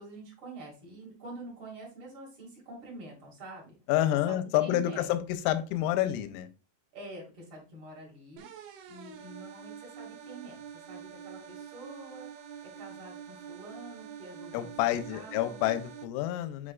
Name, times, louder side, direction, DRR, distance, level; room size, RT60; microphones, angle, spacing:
voice 1, 0.0-3.8 4.3-5.1 6.9-15.6, right 2 dB, 55° right, -2 dB, 1.4 m, -47 dB
voice 2, 3.9-5.2 5.5-6.5 14.5-16.7, left 13 dB, 85° left, 11 dB, 3.2 m, -28 dB
sound 1, 8.4-16.0, right 8 dB, 75° right, 2.6 m, -46 dB
8.6 x 4.7 x 2.3 m, 0.33 s
omnidirectional pair, 6.0 m